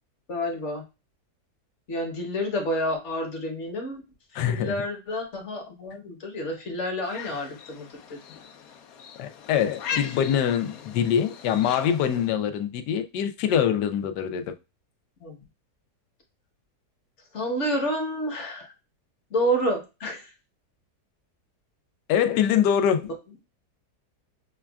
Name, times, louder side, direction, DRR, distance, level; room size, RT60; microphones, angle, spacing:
voice 1, 0.3-0.8 1.9-4.0 4.3-7.9 9.9-10.0 15.2-15.4 17.3-18.7 19.3-20.3, equal, 50° left, 1.1 m, -29 dB
voice 2, 4.3-4.7 9.2-14.4 22.1-23.1, left 9 dB, 85° left, 1.2 m, -24 dB
sound 1, 7.0-12.3, left 8 dB, 70° left, 0.9 m, -39 dB
5.8 x 2.3 x 2.3 m
omnidirectional pair, 1.8 m